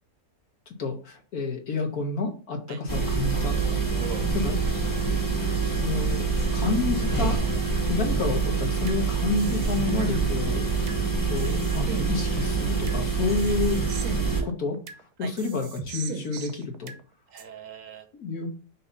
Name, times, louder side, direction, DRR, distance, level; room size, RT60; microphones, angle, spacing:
voice 1, 0.8-3.8 4.4-4.9 5.6-6.3 6.5-7.4 7.9-14.0 14.4-14.8 15.2-16.9 18.1-18.5, left 4 dB, 75° left, 2 dB, 1.9 m, -30 dB
sound 1, 2.9-14.4, right 4 dB, 15° left, 1.2 m, -26 dB
voice 2, 3.3-4.2 13.5-13.6 15.2-15.3 17.3-18.1, right 9 dB, 65° right, 9 dB, 1.0 m, -41 dB
sound 2, 8.1-9.0 9.4-11.0 11.4-13.0 13.4-15.0 15.4-17.0 17.4-17.5, right 6 dB, 90° right, 1.3 m, -37 dB
6.3 x 3.0 x 5.3 m, 0.36 s
omnidirectional pair, 1.6 m